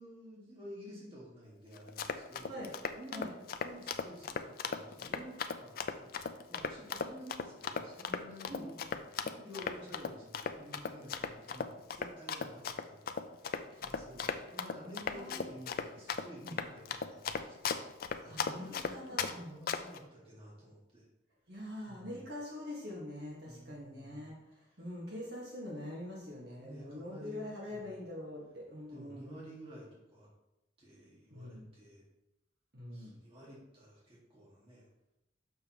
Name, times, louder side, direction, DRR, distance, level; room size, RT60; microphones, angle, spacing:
voice 1, 0.0-3.3 3.6-6.2 6.5-13.1 13.7-21.1 21.9-22.1 23.4-24.3 26.6-28.0 28.9-30.3 30.8-32.0 32.9-34.9, equal, 30° right, -6 dB, 1.9 m, -51 dB
Run, 1.8-19.3 19.7-20.0, left 6 dB, 50° left, 0.4 m, -37 dB
voice 2, 15.1-15.5 16.4-16.6 18.3-19.6 21.5-24.3 24.8-29.3 31.3-31.7 32.7-33.1, left 1 dB, 55° right, -4 dB, 1.8 m, -44 dB
6.7 x 6.3 x 3.1 m, 0.90 s
head